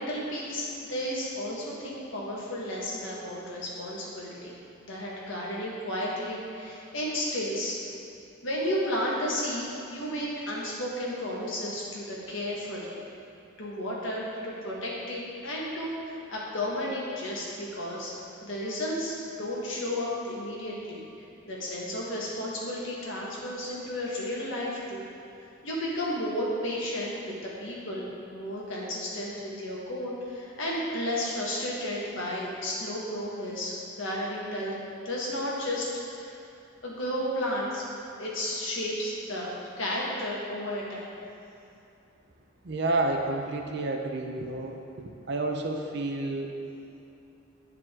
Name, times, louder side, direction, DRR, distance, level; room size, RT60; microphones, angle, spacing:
voice 1, 0.0-7.8 8.4-13.0 13.6-15.9 16.3-18.1 18.4-21.0 21.4-25.1 25.6-27.1 27.4-34.8 35.0-35.9 36.2-36.4 36.8-37.8 38.2-41.1, left 1 dB, 70° left, -5 dB, 1.5 m, -33 dB
voice 2, 42.6-46.6, right 2 dB, 55° right, 2 dB, 0.6 m, -30 dB
9.4 x 4.8 x 3.7 m, 2.8 s
head